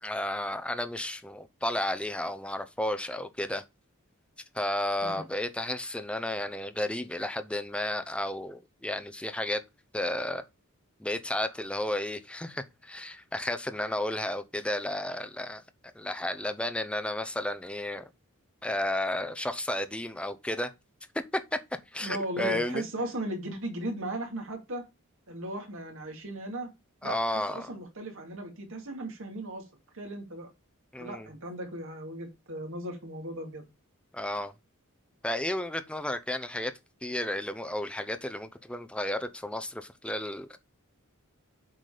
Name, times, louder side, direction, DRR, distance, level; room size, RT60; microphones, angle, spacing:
voice 1, 0.0-3.6 4.5-9.6 9.9-10.4 11.0-15.6 15.9-18.1 18.6-20.7 21.9-22.8 27.0-27.7 30.9-31.3 34.1-34.5 35.2-36.7 37.0-40.6, left 1 dB, 5° left, 0.6 m, -32 dB
voice 2, 22.0-24.9 25.3-26.7 27.0-30.5 31.0-33.7, right 1 dB, 65° right, 2.4 m, -37 dB
7.7 x 4.0 x 4.9 m
head